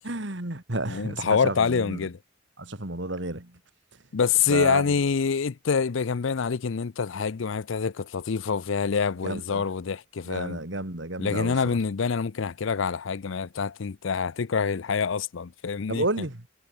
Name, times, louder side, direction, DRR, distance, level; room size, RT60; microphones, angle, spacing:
voice 1, 0.0-2.0 2.6-3.6 4.5-5.0 9.2-9.6 10.2-11.5 15.9-16.4, right 2 dB, 60° right, 2.6 m, -31 dB
voice 2, 0.9-2.2 4.1-10.6 11.2-16.1, left 5 dB, 70° left, 0.5 m, -26 dB
head